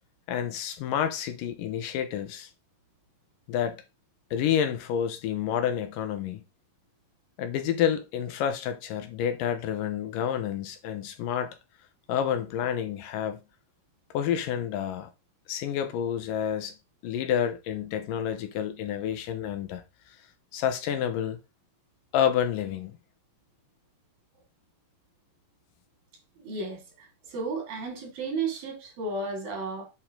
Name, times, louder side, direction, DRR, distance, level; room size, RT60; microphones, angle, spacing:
voice 1, 0.3-2.5 3.5-3.8 4.3-6.4 7.4-11.5 12.1-13.4 14.1-15.1 15.5-16.7 17.0-19.8 20.5-21.4 22.1-23.0, left 9 dB, 80° left, 2.6 m, -29 dB
voice 2, 26.4-29.9, right 3 dB, 90° right, 4.4 m, -33 dB
8.4 x 4.6 x 3.7 m
omnidirectional pair, 3.9 m